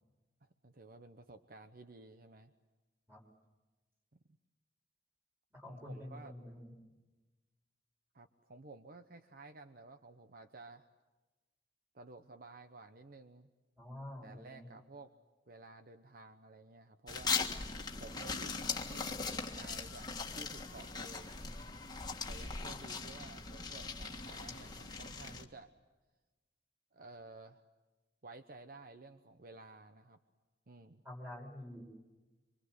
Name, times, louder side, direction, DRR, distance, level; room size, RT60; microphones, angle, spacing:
voice 1, 0.4-2.5 4.1-4.2 5.6-6.4 8.1-10.9 11.9-13.5 14.2-15.1 15.5-17.4 18.0-19.2 19.6-21.3 22.3-25.7 26.9-27.7 28.2-30.2 30.7-31.0, right 3 dB, 55° right, 8 dB, 1.0 m, -54 dB
voice 2, 5.5-6.8 13.8-14.7 31.0-31.9, left 1 dB, 15° right, 0 dB, 6.6 m, -47 dB
sound 1, 17.1-25.4, left 4 dB, 25° left, 1.8 m, -40 dB
26.0 x 25.0 x 8.1 m, 1.2 s
head